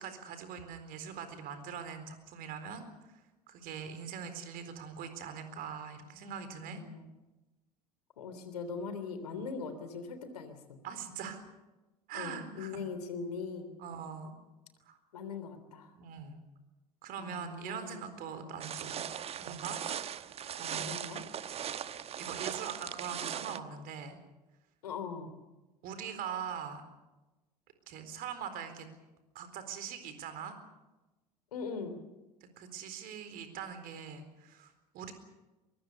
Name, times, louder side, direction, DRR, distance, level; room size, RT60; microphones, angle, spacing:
voice 1, 0.0-3.1 3.5-6.8 10.8-11.4 12.1-12.9 13.8-14.3 14.8-15.0 15.9-16.4 17.0-19.0 19.4-20.9 22.2-24.2 25.8-26.8 27.9-28.9 29.3-30.6 32.6-35.1, right 7 dB, 45° right, 9 dB, 4.1 m, -42 dB
voice 2, 6.7-7.1 8.2-10.8 12.1-13.7 15.1-15.9 17.2-18.1 20.8-21.3 24.8-25.3 31.5-32.0, left 5 dB, 70° left, 9 dB, 3.3 m, -40 dB
sound 1, 18.6-23.6, right 9 dB, 30° right, 1.1 m, -39 dB
23.5 x 23.0 x 6.8 m, 1.1 s
figure-of-eight pair, 70°, 20 cm